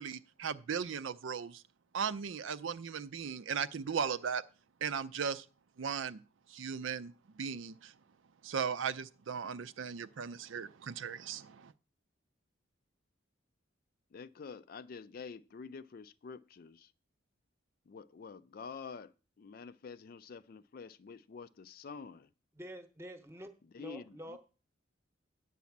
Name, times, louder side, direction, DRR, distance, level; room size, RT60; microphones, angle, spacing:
voice 1, 0.0-1.6 1.9-4.4 4.8-5.4 5.8-6.2 6.5-7.9 8.4-11.7, right 6 dB, 75° right, 0.5 m, -37 dB
voice 2, 14.1-16.9 17.9-22.3 23.7-24.4, left 5 dB, 45° left, 0.4 m, -48 dB
voice 3, 22.5-23.5 23.8-24.4, equal, 15° right, 0.9 m, -47 dB
9.3 x 4.1 x 7.2 m
head